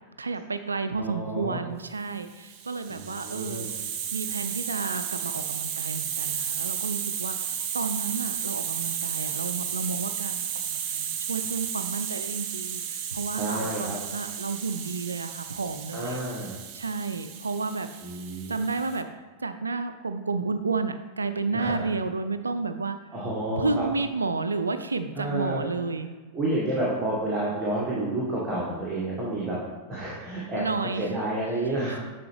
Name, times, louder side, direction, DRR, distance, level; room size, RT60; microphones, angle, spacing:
voice 1, 0.2-3.8 4.1-16.2 16.7-17.9 18.5-19.1 19.4-23.0 23.6-26.1 30.6-31.1 31.9-32.0, right 4 dB, 75° right, 10 dB, 0.3 m, -31 dB
voice 2, 1.0-1.6 2.9-3.7 13.3-14.0 15.9-16.6 18.0-18.6 21.5-21.9 23.1-23.9 25.2-25.6 26.3-29.6 29.9-30.6 31.0-32.0, right 1 dB, 10° right, -7 dB, 1.5 m, -30 dB
Hiss, 2.4-19.0, right 8 dB, 40° right, 0.6 m, -33 dB
9.2 x 4.2 x 3.3 m, 1.4 s
figure-of-eight pair, 90°, 0 cm